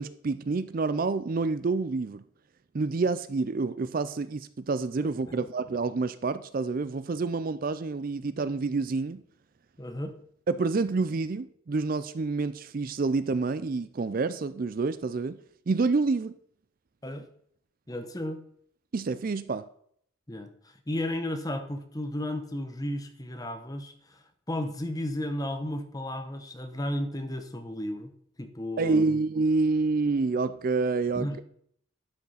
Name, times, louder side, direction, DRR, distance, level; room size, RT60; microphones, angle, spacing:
voice 1, 0.0-2.2 2.7-9.2 10.5-15.4 15.7-16.3 18.9-19.6 28.8-31.4, right 3 dB, 40° right, 0.4 m, -28 dB
voice 2, 5.0-5.4 9.8-10.1 17.0-17.3 17.9-18.4 20.3-28.1 28.4-29.2 31.1-31.4, left 1 dB, 15° left, 1.0 m, -34 dB
11.5 x 6.0 x 5.6 m
head